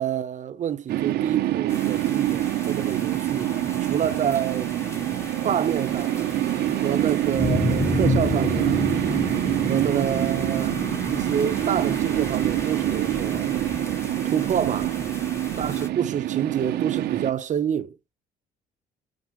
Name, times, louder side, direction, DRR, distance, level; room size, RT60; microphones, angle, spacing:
voice 1, 0.0-3.5 3.9-4.7 5.4-6.2 6.8-8.8 9.7-10.8 11.1-13.7 14.2-15.0 15.6-17.9, right 9 dB, 45° right, 1.0 m, -27 dB
sound 1, 0.9-17.3, right 14 dB, 75° right, 0.9 m, -26 dB
sound 2, 1.7-15.9, left 3 dB, 15° left, 1.6 m, -32 dB
9.3 x 5.6 x 3.2 m
cardioid pair, 110°, 17 cm